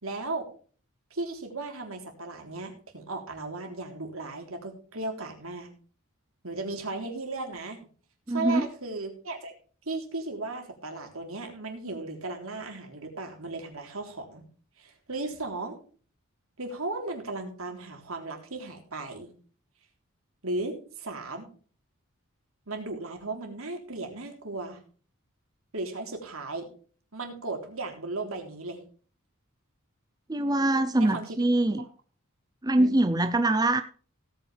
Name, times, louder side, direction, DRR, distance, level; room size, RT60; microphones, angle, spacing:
voice 1, 0.0-0.5 1.1-5.7 6.4-7.8 8.3-9.5 9.9-14.4 14.8-15.8 16.6-19.3 20.4-21.5 22.7-24.8 25.7-26.7 27.1-28.8 31.0-31.4 32.8-32.9, right 2 dB, 70° right, 3 dB, 3.5 m, -36 dB
voice 2, 8.3-8.7 30.3-31.9 32.6-33.8, right 1 dB, 15° right, 9 dB, 0.6 m, -23 dB
17.5 x 9.2 x 3.4 m, 0.42 s
head